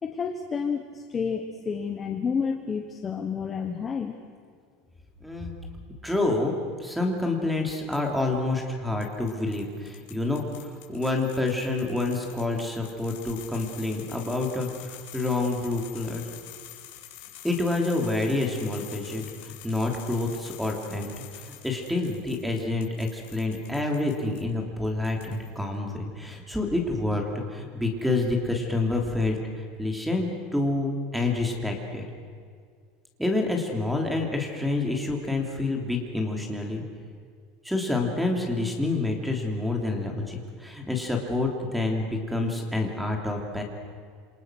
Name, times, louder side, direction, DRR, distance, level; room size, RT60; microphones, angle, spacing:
voice 1, 0.0-4.2, left 6 dB, 20° left, 5 dB, 1.2 m, -30 dB
voice 2, 5.2-5.5 6.0-6.5 6.8-10.4 10.9-16.2 17.4-29.4 29.8-32.0 33.2-36.8 37.6-43.6, left 2 dB, ahead, 2 dB, 3.0 m, -28 dB
sound 1, 7.9-8.3 9.0-24.4 24.8-25.6, left 12 dB, 70° left, 4.9 m, -47 dB
28.0 x 26.0 x 6.3 m, 2.1 s
supercardioid pair, 170°, 0 cm